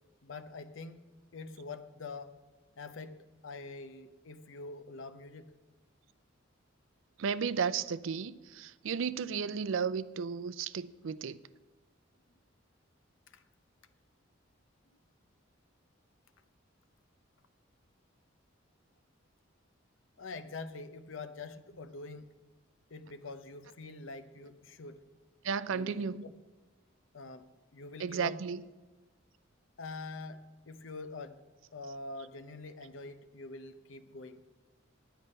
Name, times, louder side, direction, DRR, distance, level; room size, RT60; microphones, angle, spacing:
voice 1, 0.2-1.0 1.3-2.3 2.8-3.2 3.4-5.5 13.3-13.4 20.2-22.3 22.9-25.0 25.7-26.3 27.1-28.4 29.8-31.4 31.7-34.4, left 3 dB, 75° left, 0.7 m, -45 dB
voice 2, 7.2-11.4 25.4-26.2 28.0-28.6, right 6 dB, 75° right, 0.4 m, -34 dB
10.5 x 9.1 x 5.4 m
head